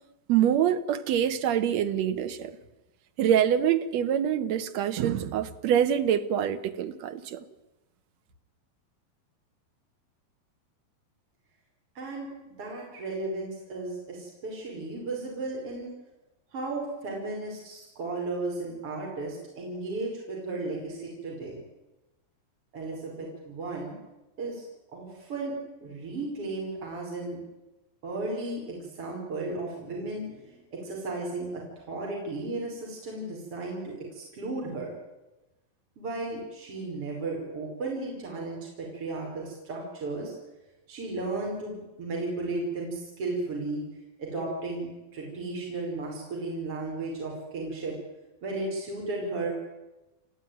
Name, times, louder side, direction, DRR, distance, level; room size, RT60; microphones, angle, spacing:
voice 1, 0.3-2.6 3.2-7.4, right 9 dB, 60° right, 9 dB, 2.1 m, -25 dB
voice 2, 12.0-15.9 16.5-21.6 22.7-24.0 24.4-24.6 24.9-25.5 25.8-27.4 28.0-34.9 36.0-40.3 40.9-43.8 44.2-47.9 48.4-49.5, right 2 dB, 40° right, -2 dB, 5.8 m, -34 dB
29.0 x 14.5 x 9.4 m, 1.0 s
omnidirectional pair, 4.1 m